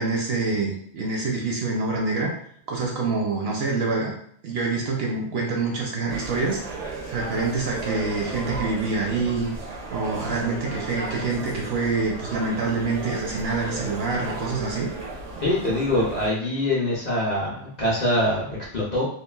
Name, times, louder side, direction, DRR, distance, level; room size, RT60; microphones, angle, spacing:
voice 1, 0.0-2.3 2.7-4.1 4.4-6.6 7.1-9.5 9.9-14.9, right 3 dB, 65° right, -1 dB, 0.7 m, -26 dB
sound 1, 6.1-16.3, right 3 dB, 80° right, 1.0 m, -34 dB
voice 2, 15.4-19.1, left 1 dB, 45° left, -5 dB, 0.7 m, -24 dB
3.0 x 2.3 x 2.3 m, 0.64 s
omnidirectional pair, 1.3 m